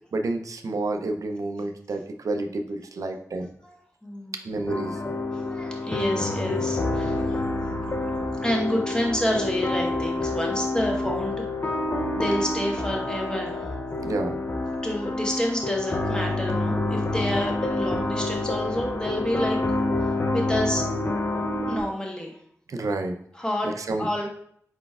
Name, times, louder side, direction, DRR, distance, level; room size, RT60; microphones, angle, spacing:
voice 1, 0.1-3.5 4.4-5.0 14.0-14.4 22.7-23.2 23.6-24.1, right 2 dB, 70° right, 5 dB, 0.5 m, -29 dB
voice 2, 4.0-4.4 5.0-5.1 5.4-7.2 8.4-11.7 12.1-13.7 14.8-19.6 20.3-20.8 21.7-22.3 23.4-23.7 24.0-24.3, equal, 15° left, 0 dB, 1.1 m, -28 dB
sound 1, 4.7-21.8, left 2 dB, 40° left, 0.5 m, -28 dB
4.4 x 4.0 x 2.3 m, 0.64 s
wide cardioid pair, 65°, 6 cm